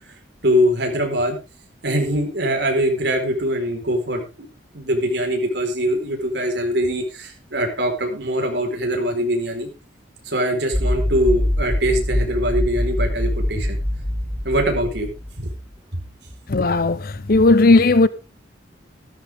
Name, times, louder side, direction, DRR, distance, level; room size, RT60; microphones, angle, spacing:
voice 1, 0.4-1.4 1.8-4.2 4.7-9.7 10.2-13.8 14.4-15.5, equal, 65° right, 4.7 m, -22 dB
sound 1, 10.7-15.5, left 1 dB, 10° left, 4.3 m, -23 dB
voice 2, 16.5-18.1, left 3 dB, 55° left, 0.7 m, -15 dB
13.5 x 13.5 x 3.6 m
head